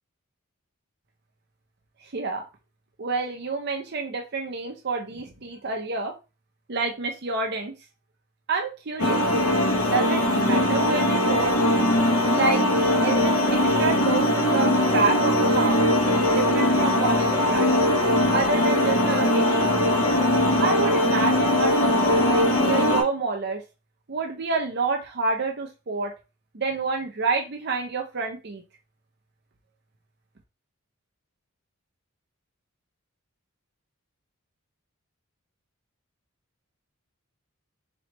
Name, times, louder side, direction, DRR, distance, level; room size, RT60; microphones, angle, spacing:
voice 1, 2.1-2.4 3.0-6.1 6.7-7.7 8.5-9.2 9.8-11.6 12.3-12.6 13.0-15.9 16.3-17.8 18.3-19.7 20.6-23.6 24.1-26.1 26.5-28.6, right 4 dB, 50° right, 2 dB, 0.6 m, -28 dB
sound 1, 9.0-23.0, left 1 dB, 70° left, 1.1 m, -21 dB
4.2 x 3.1 x 3.0 m, 0.29 s
head